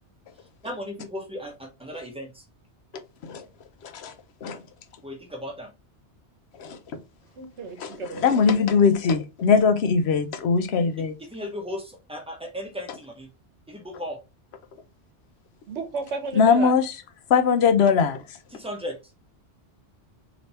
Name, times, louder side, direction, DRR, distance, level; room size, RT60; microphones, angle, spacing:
voice 1, 0.6-2.4 5.0-5.7 11.3-13.3 13.7-14.2 18.5-19.1, left 1 dB, 5° right, 0.7 m, -36 dB
voice 2, 3.8-4.1 4.4-4.6 6.6-6.8 7.8-11.1 16.4-16.9 17.3-18.2, left 5 dB, 70° left, 0.8 m, -21 dB
voice 3, 7.4-8.4 15.7-16.7, right 4 dB, 80° right, 1.1 m, -33 dB
3.3 x 3.0 x 2.7 m
omnidirectional pair, 1.2 m